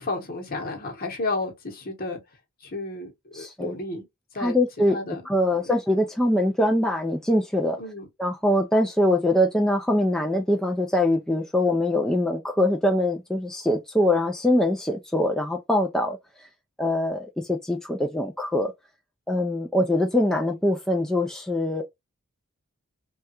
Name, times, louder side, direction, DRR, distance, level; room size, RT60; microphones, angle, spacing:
voice 1, 0.0-2.2 2.6-4.1 4.3-4.6 4.9-5.2 7.8-8.1, left 2 dB, 45° left, 1.0 m, -32 dB
voice 2, 3.3-3.7 4.4-5.0 5.3-7.8 8.2-16.2 16.8-18.7 19.3-21.8, left 1 dB, 5° left, 0.4 m, -23 dB
3.3 x 2.3 x 2.8 m
head